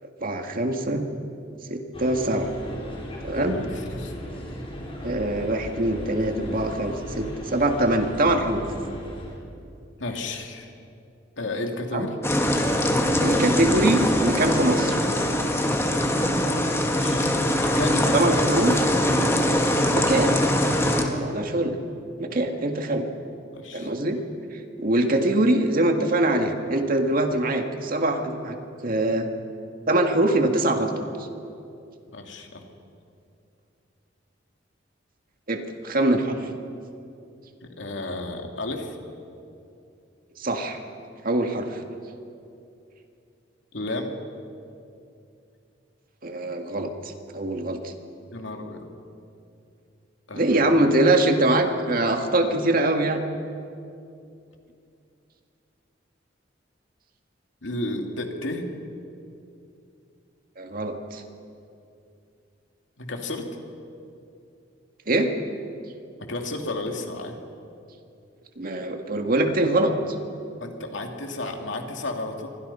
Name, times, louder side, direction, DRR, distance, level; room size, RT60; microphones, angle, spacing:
voice 1, 0.2-1.1 1.7-2.5 3.2-3.6 5.0-8.7 11.9-12.1 13.2-15.0 18.1-18.7 19.9-21.7 22.2-23.1 23.7-24.2 24.5-28.6 28.8-29.3 29.9-31.0 35.5-36.5 40.4-40.8 41.2-41.8 46.2-46.9 47.3-47.9 50.3-53.3 60.6-61.2 65.1-65.3 68.6-69.9, right 1 dB, 50° right, 4 dB, 2.0 m, -23 dB
sound 1, 1.9-9.4, equal, 30° left, 4.9 m, -36 dB
voice 2, 3.5-4.1 10.0-10.7 11.4-12.2 16.8-17.3 17.6-18.9 23.5-23.9 32.1-32.6 36.3-36.4 37.6-39.0 43.7-44.2 48.3-48.9 50.3-50.7 57.6-58.7 63.0-63.5 66.3-67.4 70.6-72.5, left 2 dB, 80° left, 3 dB, 2.8 m, -32 dB
sound 2, 12.2-21.0, left 1 dB, 15° left, 2.2 m, -22 dB
28.0 x 24.0 x 5.7 m, 2.6 s
head